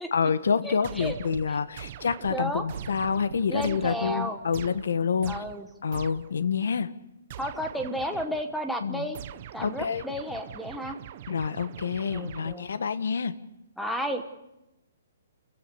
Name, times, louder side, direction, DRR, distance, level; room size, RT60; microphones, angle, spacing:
voice 1, 0.1-5.4 5.8-6.9 8.8-9.1 9.6-10.0 11.3-13.3, left 6 dB, 75° left, 13 dB, 1.3 m, -27 dB
voice 2, 0.6-1.2 2.3-2.6 3.5-4.4 5.3-5.7 7.4-9.2 9.5-11.0 12.1-12.7 13.8-14.2, equal, ahead, 6 dB, 1.1 m, -32 dB
sound 1, 0.8-6.5 7.3-8.6 9.1-12.8, right 11 dB, 30° right, 0.7 m, -44 dB
sound 2, 1.0-1.7 2.2-3.6, right 5 dB, 90° right, 2.4 m, -43 dB
29.0 x 15.5 x 6.9 m, 0.93 s
hypercardioid pair, 175°, 0 cm